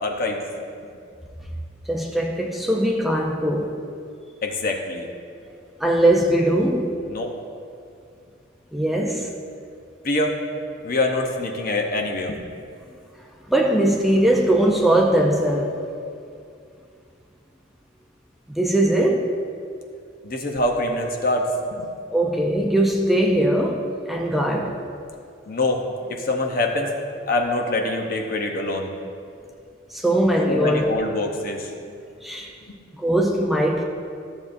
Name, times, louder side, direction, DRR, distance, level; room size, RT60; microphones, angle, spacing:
voice 1, 0.0-0.4 4.4-5.1 7.1-7.3 10.0-10.4 10.8-12.4 20.2-21.9 25.5-25.8 26.1-26.9 27.3-28.9 30.5-31.7 32.7-32.8, left 2 dB, 50° left, 2 dB, 0.8 m, -24 dB
voice 2, 1.9-3.8 5.8-6.9 8.7-9.3 13.5-15.8 18.5-19.3 22.1-24.7 29.9-30.8 32.2-32.5 33.0-33.8, right 1 dB, ahead, -1 dB, 0.5 m, -20 dB
13.0 x 7.0 x 2.6 m, 2.4 s
head